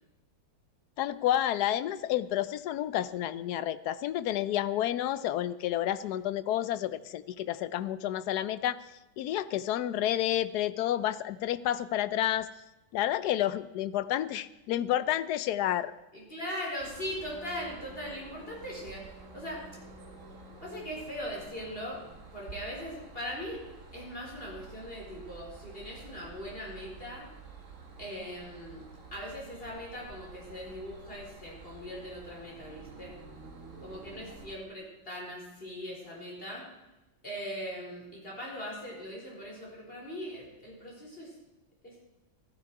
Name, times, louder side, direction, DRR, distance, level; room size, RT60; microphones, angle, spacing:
voice 1, 1.0-8.8 9.2-12.5 12.9-15.9, left 12 dB, 70° left, 14 dB, 0.9 m, -30 dB
voice 2, 16.1-19.6 20.6-22.0 22.3-23.6 23.9-27.3 28.0-28.8 29.1-33.2 33.8-36.7 37.2-41.4 41.8-42.0, equal, 25° left, -3 dB, 4.7 m, -40 dB
sound 1, 16.8-34.5, right 4 dB, 40° right, 1.9 m, -50 dB
15.0 x 13.0 x 4.8 m, 1.0 s
omnidirectional pair, 2.2 m